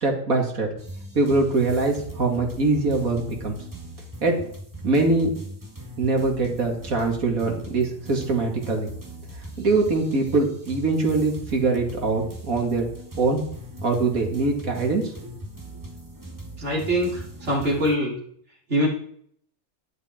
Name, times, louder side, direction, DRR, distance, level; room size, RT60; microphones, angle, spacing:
voice 1, 0.0-0.7 1.1-3.6 4.2-4.4 4.8-5.3 6.0-8.9 9.6-12.9 13.2-13.4 13.8-15.0, right 3 dB, 75° right, 1 dB, 2.8 m, -23 dB
sound 1, 0.8-18.0, right 1 dB, 15° right, 1.5 m, -40 dB
voice 2, 16.6-18.2 18.7-18.9, equal, 50° right, -5 dB, 3.9 m, -23 dB
11.5 x 10.5 x 4.4 m, 0.63 s
omnidirectional pair, 1.5 m